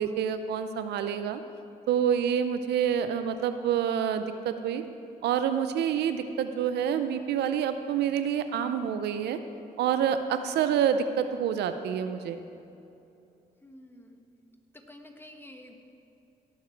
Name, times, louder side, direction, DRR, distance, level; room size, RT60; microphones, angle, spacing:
voice 1, 0.0-1.4 1.9-4.8 5.2-9.4 9.8-12.4, right 8 dB, 85° right, 9 dB, 0.6 m, -27 dB
voice 2, 13.6-14.2 14.7-15.7, left 1 dB, 15° left, 3 dB, 1.6 m, -49 dB
18.0 x 6.8 x 4.6 m, 2.8 s
supercardioid pair, 60°, 17 cm